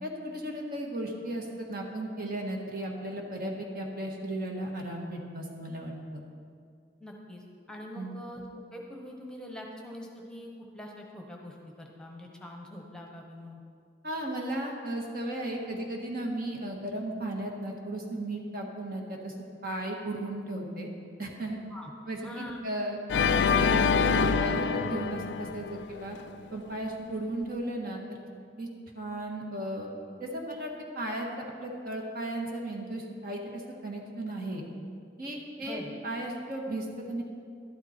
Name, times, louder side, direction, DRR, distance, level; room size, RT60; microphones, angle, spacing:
voice 1, 0.0-6.2 7.9-8.2 14.0-19.3 19.6-20.9 21.2-21.6 22.1-22.3 22.6-26.2 26.5-28.2 28.6-28.7 29.0-29.9 30.2-31.3 31.6-34.6 35.2-37.2, right 1 dB, 55° right, 0 dB, 1.7 m, -35 dB
voice 2, 7.0-8.4 8.7-13.6 21.7-21.9 22.2-22.6 35.6-35.9, left 1 dB, 5° left, 0 dB, 1.1 m, -43 dB
Organ, 23.1-26.2, left 6 dB, 85° left, 0.4 m, -25 dB
12.0 x 11.5 x 4.4 m, 2.3 s
head